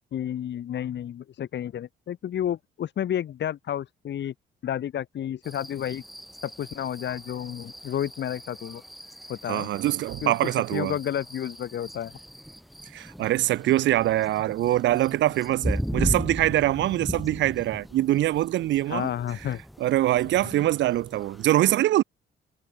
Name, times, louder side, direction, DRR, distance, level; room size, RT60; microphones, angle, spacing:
voice 1, 0.1-4.3 4.6-6.0 6.4-8.8 9.3-9.7 10.2-12.1 18.9-19.6 20.5-20.7, left 10 dB, 65° left, 2.0 m, -31 dB
sound 1, 5.4-21.5, equal, ahead, 3.4 m, -37 dB
voice 2, 9.5-10.9 12.9-19.1 19.8-22.0, right 14 dB, 65° right, 0.5 m, -23 dB
cardioid pair, 90°, 20 cm